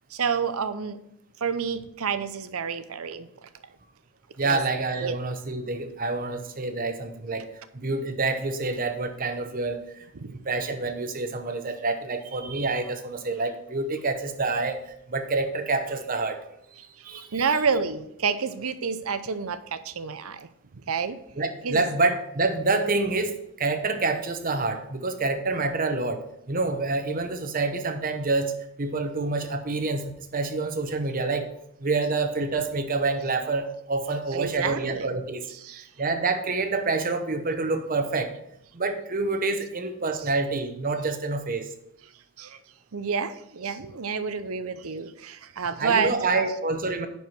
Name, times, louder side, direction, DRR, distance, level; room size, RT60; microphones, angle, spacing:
voice 1, 0.1-1.0 1.4-3.3 4.4-4.6 5.0-5.1 10.1-10.4 17.3-20.5 20.8-21.2 21.6-21.9 34.3-35.2 35.6-35.8 40.2-40.3 42.4-42.6 42.9-46.5, right 5 dB, 75° right, 12 dB, 0.7 m, -29 dB
voice 2, 4.4-7.5 7.7-10.1 10.4-17.4 21.3-31.5 31.8-35.5 35.7-38.3 38.7-41.7 45.8-47.1, right 3 dB, 40° right, 8 dB, 0.9 m, -27 dB
10.5 x 4.7 x 4.6 m, 0.77 s
head